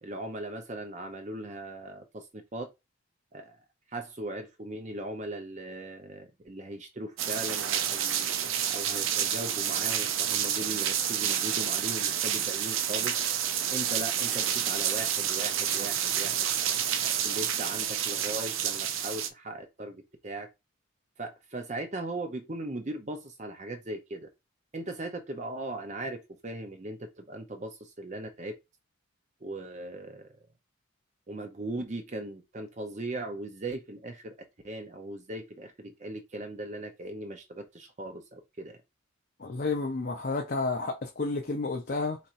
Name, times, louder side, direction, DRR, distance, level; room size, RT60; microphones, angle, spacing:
voice 1, 0.0-2.7 3.3-8.3 8.7-13.2 13.7-16.5 17.0-20.5 21.2-24.3 24.7-28.5 29.4-30.3 31.3-34.3 34.6-38.8, right 2 dB, 35° right, 0.6 m, -38 dB
sound 1, 7.2-19.3, right 9 dB, 75° right, 0.6 m, -29 dB
voice 2, 39.4-42.2, left 3 dB, 45° left, 0.6 m, -31 dB
4.3 x 4.1 x 2.5 m
head